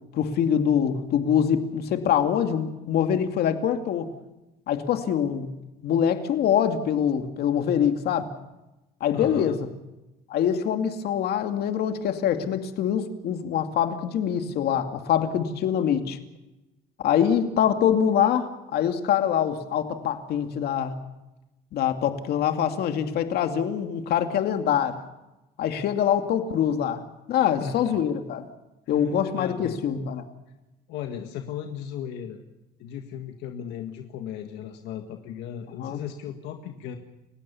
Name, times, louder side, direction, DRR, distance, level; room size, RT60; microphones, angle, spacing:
voice 1, 0.1-4.1 4.7-5.5 5.8-8.3 9.0-9.6 10.3-16.2 17.0-20.9 21.7-25.0 25.6-27.0 27.3-28.4 28.9-30.2 35.8-36.0, left 9 dB, 70° left, 6 dB, 2.5 m, -24 dB
voice 2, 9.1-9.6 27.4-28.0 28.9-29.8 30.9-32.4 32.8-37.0, left 9 dB, 90° left, 4 dB, 1.8 m, -36 dB
30.0 x 16.0 x 7.0 m, 0.99 s
cardioid pair, 110°, 17 cm